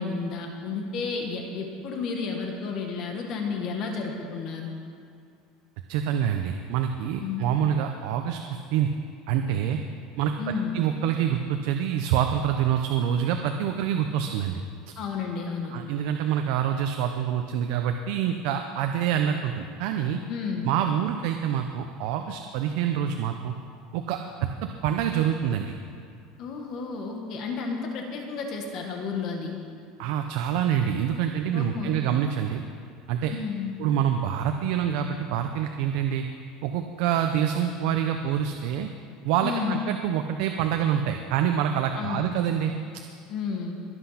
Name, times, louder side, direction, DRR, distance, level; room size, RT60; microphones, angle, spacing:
voice 1, 0.0-4.7 7.2-7.5 10.4-10.8 15.0-15.8 20.3-20.7 26.4-29.5 31.5-32.0 33.3-33.7 39.4-39.8 41.9-42.2 43.3-43.8, left 5 dB, 45° left, 2 dB, 1.7 m, -31 dB
voice 2, 5.9-8.9 9.3-9.8 10.2-10.3 10.7-14.6 15.7-20.2 20.6-23.5 23.9-25.7 30.0-32.6 33.1-33.3 33.8-36.3 36.6-38.9 39.2-42.7, right 9 dB, 65° right, 5 dB, 0.8 m, -26 dB
22.0 x 8.0 x 5.9 m, 2.3 s
cardioid pair, 150°, 0 cm